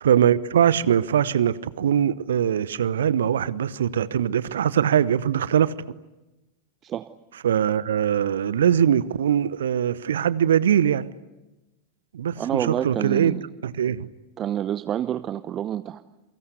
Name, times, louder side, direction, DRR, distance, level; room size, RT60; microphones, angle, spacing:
voice 1, 0.0-5.7 7.4-11.1 12.1-13.3 13.6-14.1, right 9 dB, 65° right, 0.9 m, -22 dB
voice 2, 12.4-13.5 14.4-16.0, right 11 dB, 30° right, 0.9 m, -28 dB
28.5 x 24.0 x 8.1 m
figure-of-eight pair, 90°, 0 cm